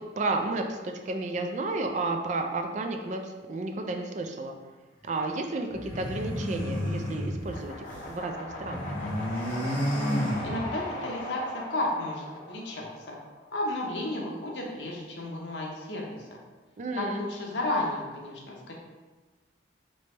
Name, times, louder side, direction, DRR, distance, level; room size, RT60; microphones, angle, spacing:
voice 1, 0.0-4.5 5.0-8.9 16.8-17.2, right 2 dB, 40° right, 4 dB, 0.4 m, -32 dB
sound 1, 5.7-8.1 8.4-11.0, equal, 10° left, 1.0 m, -31 dB
sound 2, 7.4-13.6, left 1 dB, 50° left, 0.9 m, -39 dB
voice 2, 10.4-13.2 13.5-16.3 16.9-18.7, left 1 dB, 80° left, -1 dB, 0.8 m, -33 dB
3.9 x 3.3 x 3.2 m, 1.3 s
head